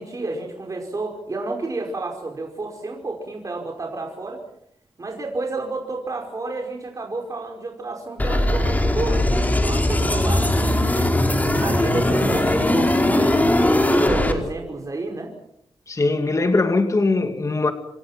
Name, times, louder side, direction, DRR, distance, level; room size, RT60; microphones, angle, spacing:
voice 1, 0.0-4.4 5.0-11.2 11.6-13.4 13.9-15.3, right 2 dB, 40° right, 1 dB, 5.1 m, -30 dB
sound 1, 8.2-14.3, left 1 dB, 20° left, 4.5 m, -19 dB
voice 2, 15.9-17.7, left 3 dB, 35° left, 6 dB, 2.5 m, -20 dB
28.0 x 26.5 x 5.9 m, 0.73 s
wide cardioid pair, 105°, 9 cm